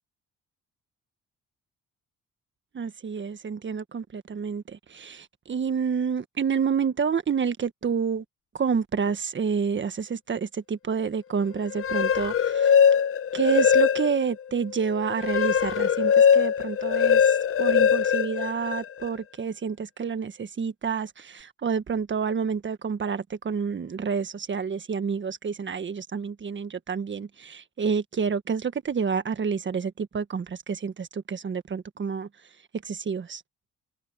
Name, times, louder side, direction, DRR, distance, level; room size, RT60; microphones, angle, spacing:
voice 1, 2.7-8.2 8.5-12.7 13.3-32.3 32.8-33.4, right 6 dB, 40° right, 1.5 m, -29 dB
sound 1, 11.7-14.3 14.8-19.1, left 7 dB, 45° left, 0.7 m, -21 dB
cardioid pair, 90°, 30 cm